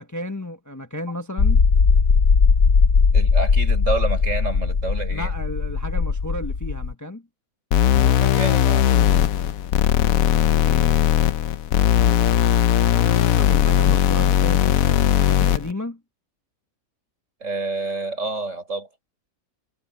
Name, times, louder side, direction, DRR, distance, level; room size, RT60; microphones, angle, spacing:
voice 1, 0.0-1.6 5.1-7.3 12.9-16.0, left 1 dB, 15° left, 1.0 m, -33 dB
sound 1, 1.4-6.9, left 5 dB, 55° left, 1.4 m, -18 dB
voice 2, 3.1-5.3 8.1-8.9 17.4-18.9, right 3 dB, 60° right, 6.2 m, -28 dB
sound 2, 7.7-15.7, left 10 dB, 80° left, 1.1 m, -18 dB
omnidirectional pair, 1.5 m